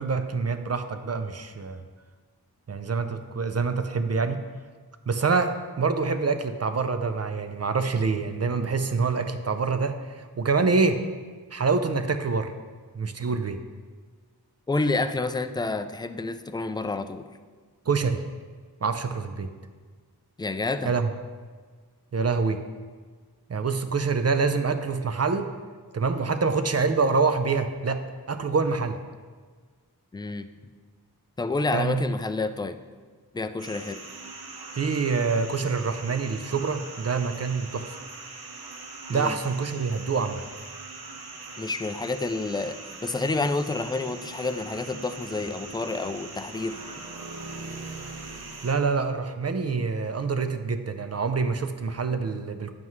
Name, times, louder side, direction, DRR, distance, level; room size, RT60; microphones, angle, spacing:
voice 1, 0.0-1.8 2.7-4.4 5.1-11.0 11.5-12.5 12.9-13.6 17.9-18.2 18.8-19.5 20.8-21.1 22.1-22.6 23.5-25.5 25.9-28.0 28.3-29.0 31.7-32.1 34.7-38.0 39.1-40.4 48.6-52.7, right 4 dB, 40° right, 9 dB, 0.5 m, -26 dB
voice 2, 14.7-17.2 20.4-20.9 30.1-30.5 31.4-32.8 33.3-34.0 39.1-39.4 41.6-46.8, left 3 dB, 10° left, 9 dB, 0.3 m, -29 dB
sound 1, 33.6-48.7, right 3 dB, 70° right, 1.0 m, -41 dB
9.3 x 7.3 x 3.2 m, 1.5 s
wide cardioid pair, 90°, 38 cm